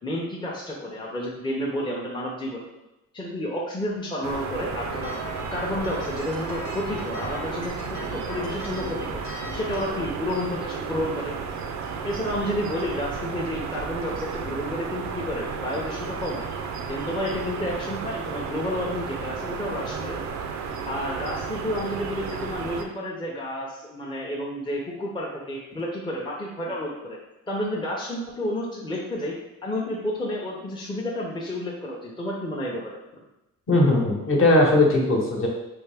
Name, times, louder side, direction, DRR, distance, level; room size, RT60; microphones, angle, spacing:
voice 1, 0.0-2.7 3.1-5.2 5.5-9.2 9.5-11.4 12.0-16.5 16.9-20.2 20.9-27.2 27.5-29.3 29.6-33.0, left 1 dB, 15° left, -4 dB, 0.7 m, -30 dB
sound 1, 4.2-22.8, right 5 dB, 65° right, 0.5 m, -33 dB
sound 2, 4.9-10.0, left 2 dB, 85° left, 0.8 m, -39 dB
voice 2, 33.7-35.5, left 2 dB, 45° left, -1 dB, 1.0 m, -19 dB
3.5 x 2.6 x 3.4 m, 0.95 s
cardioid pair, 90°, 30 cm